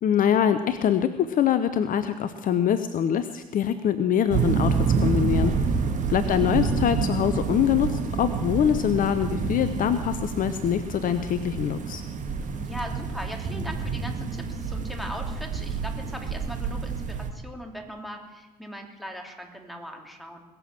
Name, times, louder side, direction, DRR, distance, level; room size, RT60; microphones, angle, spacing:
voice 1, 0.0-5.7 6.1-12.0, left 9 dB, 45° left, 11 dB, 0.8 m, -24 dB
sound 1, 4.3-17.3, right 5 dB, 40° right, 1.9 m, -28 dB
voice 2, 12.5-20.4, equal, ahead, 2 dB, 2.9 m, -39 dB
21.0 x 7.7 x 7.5 m, 1.2 s
figure-of-eight pair, 55°, 20 cm